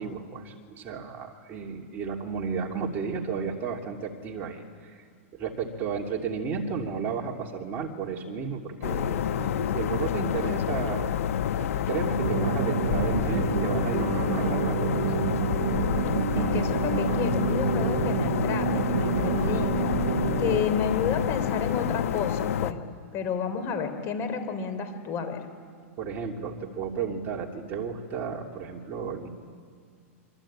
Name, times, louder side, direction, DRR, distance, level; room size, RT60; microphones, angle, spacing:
voice 1, 0.0-5.0 5.3-11.1 11.6-14.9 26.0-29.3, right 6 dB, 30° right, 0 dB, 2.9 m, -33 dB
sound 1, 8.8-22.7, left 9 dB, 80° left, 1.0 m, -28 dB
sound 2, 12.2-20.6, right 12 dB, 60° right, 0.7 m, -29 dB
voice 2, 16.3-19.9 20.4-22.8 23.1-25.4, left 6 dB, 35° left, 9 dB, 3.7 m, -31 dB
26.0 x 25.5 x 8.9 m, 2.1 s
supercardioid pair, 145°, 8 cm